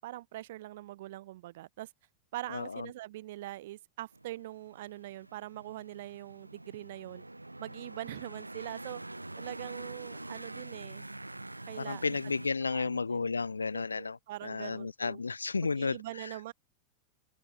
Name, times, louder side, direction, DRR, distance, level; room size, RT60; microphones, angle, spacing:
voice 1, 0.0-1.9 2.3-7.3 7.6-9.0 9.4-11.1 11.6-12.2 12.7-13.3 13.7-15.2 15.6-16.5, right 16 dB, 55° right, 2.3 m, -43 dB
voice 2, 2.5-2.9 11.8-16.3, left 4 dB, 75° left, 0.3 m, -33 dB
sound 1, 4.1-12.5, right 2 dB, 85° right, 0.6 m, -45 dB
open air
figure-of-eight pair, 90°, 0 cm